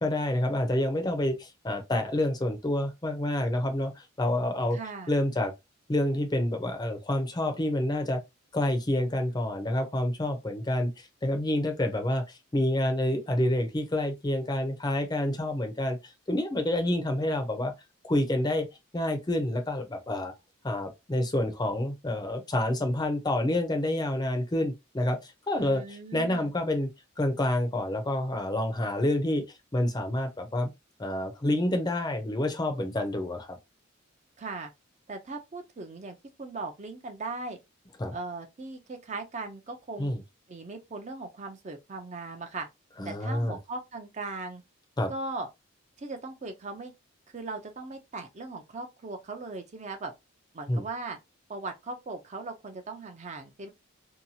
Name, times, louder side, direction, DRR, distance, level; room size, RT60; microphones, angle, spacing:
voice 1, 0.0-4.8 5.1-5.5 5.9-8.2 8.5-17.7 18.0-18.7 18.9-20.3 20.6-26.9 27.2-29.4 29.7-30.7 31.0-33.6 38.0-38.1 40.0-40.2 43.0-43.6 45.0-45.1 50.7-50.8, left 1 dB, 20° left, 0.5 m, -28 dB
voice 2, 4.7-5.1 25.6-26.5 34.4-34.7 35.1-37.6 38.1-40.1 40.5-42.7 43.0-44.6 45.1-45.5 46.0-46.9 47.3-50.1 50.5-51.2 51.5-53.7, right 3 dB, 35° right, 0.4 m, -38 dB
2.8 x 2.3 x 2.7 m
head